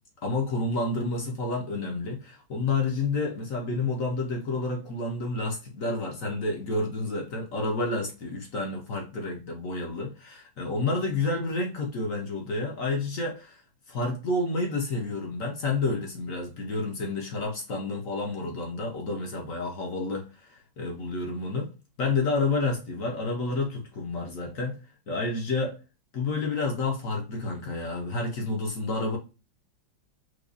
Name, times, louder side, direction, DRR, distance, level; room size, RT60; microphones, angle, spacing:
voice 1, 0.2-13.6 13.9-21.7 22.0-24.8 25.1-25.8 26.1-29.2, left 3 dB, 55° left, 1.0 m, -30 dB
4.8 x 2.2 x 2.5 m
omnidirectional pair, 2.1 m